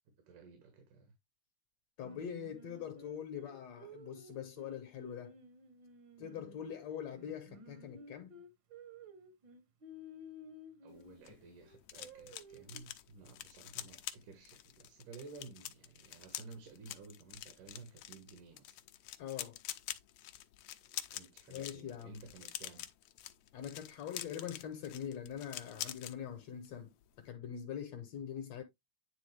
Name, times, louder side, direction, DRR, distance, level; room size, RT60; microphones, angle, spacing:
voice 1, 0.3-1.1 10.8-18.7 20.8-22.8, right 4 dB, 85° right, 3.0 m, -54 dB
voice 2, 2.0-5.4 6.2-8.4 19.2-19.6 21.5-22.2 23.5-26.9 27.2-28.6, left 8 dB, 70° left, 1.8 m, -43 dB
Singing, 2.0-6.7 7.1-11.1 11.6-12.8, equal, 60° right, 1.2 m, -54 dB
sound 1, 11.0-26.2 26.5-26.8 27.0-27.3, left 13 dB, 90° left, 1.3 m, -47 dB
9.7 x 3.5 x 3.3 m
omnidirectional pair, 3.6 m